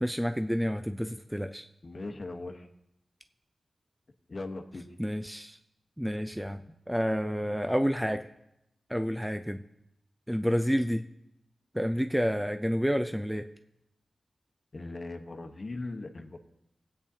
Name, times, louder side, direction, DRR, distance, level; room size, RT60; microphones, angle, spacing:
voice 1, 0.0-1.6 5.0-5.6 6.0-6.6 6.9-8.3 8.9-9.6 10.3-11.0 11.7-13.4, equal, 5° right, 7 dB, 0.4 m, -29 dB
voice 2, 1.8-2.7 4.3-4.9 14.7-16.4, left 2 dB, 50° left, 5 dB, 1.1 m, -39 dB
19.0 x 8.7 x 2.8 m, 0.83 s
wide cardioid pair, 75°, 0 cm